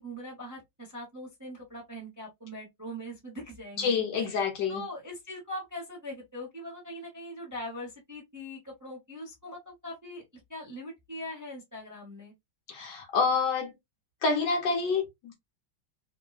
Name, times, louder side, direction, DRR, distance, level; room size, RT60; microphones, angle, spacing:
voice 1, 0.0-4.4 4.7-10.2 10.5-12.3, left 1 dB, 15° right, 0.6 m, -41 dB
voice 2, 3.8-4.8 12.7-13.7 14.2-15.3, left 5 dB, 65° left, 1.5 m, -27 dB
3.6 x 2.1 x 2.3 m
omnidirectional pair, 2.1 m